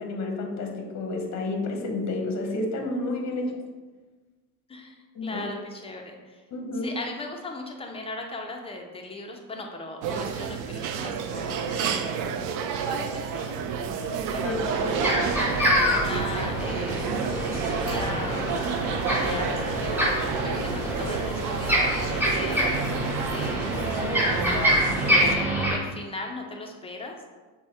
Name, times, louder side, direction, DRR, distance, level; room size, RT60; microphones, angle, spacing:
voice 1, 0.0-3.5 5.1-5.4 6.5-6.9 14.4-15.0, left 2 dB, 35° left, 3 dB, 0.9 m, -30 dB
voice 2, 4.7-6.4 6.8-12.4 12.9-13.6 14.3-15.2 15.9-17.2 17.4-18.5 18.9-22.8 23.3-24.0 24.6-27.2, left 2 dB, 10° left, 2 dB, 0.6 m, -38 dB
sound 1, 10.0-25.3, right 6 dB, 40° right, 0.4 m, -30 dB
sound 2, 14.2-25.7, equal, 5° right, 0.9 m, -26 dB
6.1 x 2.4 x 3.3 m, 1.3 s
hypercardioid pair, 75°, 50 cm